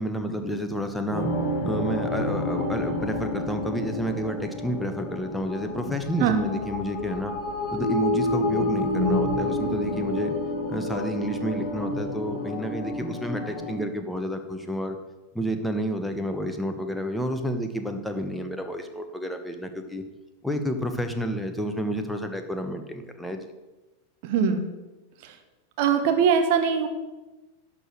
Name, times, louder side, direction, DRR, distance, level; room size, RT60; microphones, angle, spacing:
voice 1, 0.0-1.3 1.6-7.3 7.7-10.4 10.7-15.0 15.3-20.0 20.4-23.4, equal, 5° left, 6 dB, 1.2 m, -30 dB
sound 1, 1.1-13.7, left 1 dB, 25° left, 4.5 m, -29 dB
voice 2, 24.2-24.6 25.2-25.3 25.8-26.9, right 6 dB, 45° right, 6 dB, 1.3 m, -21 dB
11.0 x 5.1 x 7.7 m, 1.1 s
figure-of-eight pair, 90°, 0 cm